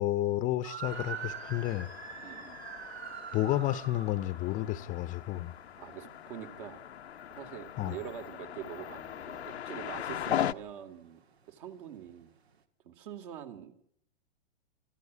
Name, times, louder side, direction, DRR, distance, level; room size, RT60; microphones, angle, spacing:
voice 1, 0.0-1.9 3.3-5.5 7.8-8.0, left 14 dB, 25° left, 14 dB, 0.8 m, -31 dB
sound 1, 0.6-7.4 7.7-11.6 11.9-12.2 12.5-12.6, right 8 dB, 80° right, 2.3 m, -45 dB
sound 2, 0.8-10.5, left 10 dB, 85° left, 0.8 m, -39 dB
voice 2, 2.2-2.6 5.8-6.8 7.3-11.2 11.5-12.3 12.8-13.7, right 9 dB, 50° right, 7 dB, 3.0 m, -44 dB
24.5 x 14.5 x 8.4 m, 0.70 s
hypercardioid pair, 130°, 32 cm